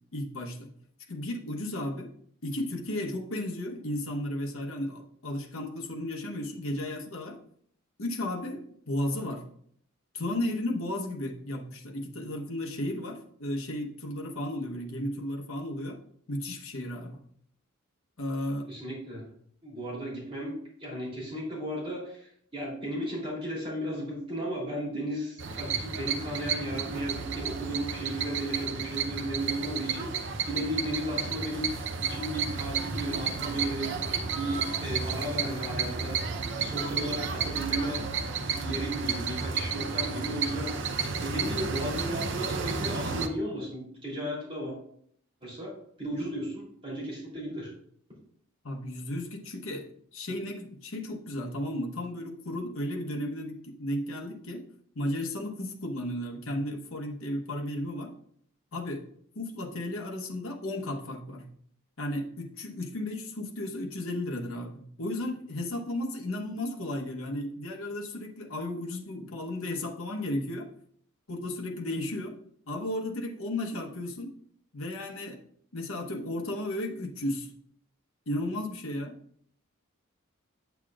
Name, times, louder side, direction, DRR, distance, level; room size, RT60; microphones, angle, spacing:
voice 1, 0.1-0.7 1.1-2.1 2.4-7.4 8.0-9.4 10.1-16.0 16.3-17.2 18.2-18.7 48.6-49.9 50.1-54.6 54.9-58.1 58.7-59.1 59.3-61.5 62.0-70.7 71.3-72.4 72.7-74.3 74.7-75.4 75.7-77.5 78.3-79.2, left 1 dB, 75° left, 2 dB, 1.1 m, -34 dB
voice 2, 18.7-19.2 19.6-34.0 34.3-36.2 36.6-38.0 38.4-40.9 41.2-44.8 45.4-45.7 46.0-47.7, right 1 dB, 25° right, -5 dB, 3.1 m, -35 dB
sound 1, 25.4-43.3, right 5 dB, 60° right, 0.7 m, -32 dB
8.2 x 7.9 x 2.4 m, 0.64 s
head